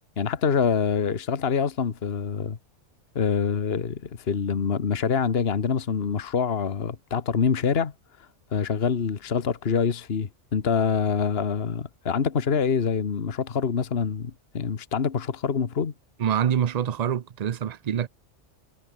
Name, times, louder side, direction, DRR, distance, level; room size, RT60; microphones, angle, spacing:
voice 1, 0.0-2.6 3.1-7.9 8.5-15.9, left 6 dB, 55° left, 1.5 m, -25 dB
voice 2, 16.2-18.1, right 9 dB, 50° right, 0.5 m, -25 dB
omnidirectional pair, 1.2 m